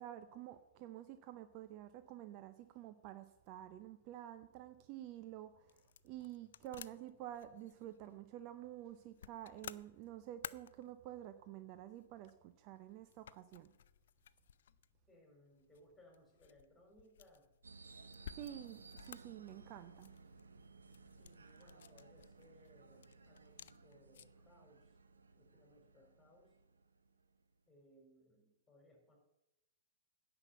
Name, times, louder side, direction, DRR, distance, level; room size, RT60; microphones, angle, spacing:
voice 1, 0.0-5.8 6.0-13.7 18.3-20.1, right 12 dB, 40° right, 11 dB, 0.6 m, -50 dB
sound 1, 4.9-24.5, left 9 dB, 65° left, 0.4 m, -57 dB
voice 2, 15.1-17.5 21.2-25.0 25.3-26.5 27.7-29.2, left 1 dB, 10° left, 1 dB, 4.0 m, -66 dB
sound 2, 17.6-27.5, right 3 dB, 85° right, 0.9 m, -59 dB
9.9 x 5.9 x 7.9 m, 0.92 s
figure-of-eight pair, 115°, 0 cm